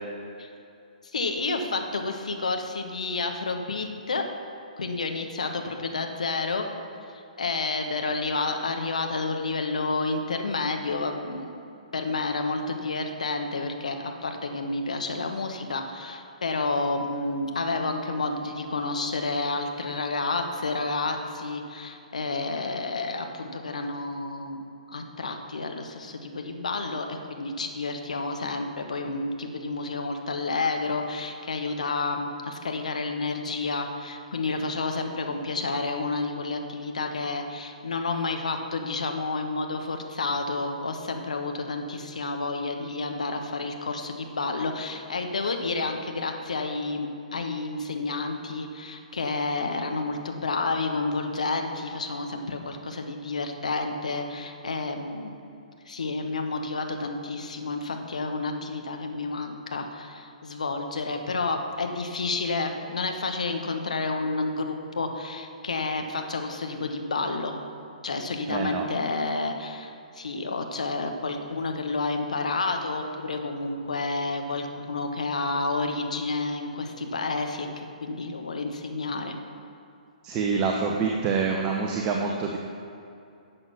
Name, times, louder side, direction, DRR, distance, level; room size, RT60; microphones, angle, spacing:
voice 1, 1.1-4.3 4.8-6.7 7.1-11.5 11.9-24.6 24.9-55.4 55.8-67.6 68.0-79.4, left 3 dB, 65° left, 4 dB, 1.3 m, -30 dB
voice 2, 68.5-68.9 80.2-82.6, right 5 dB, 25° right, 0 dB, 0.9 m, -26 dB
11.0 x 7.6 x 5.9 m, 2.6 s
figure-of-eight pair, 120°, 4 cm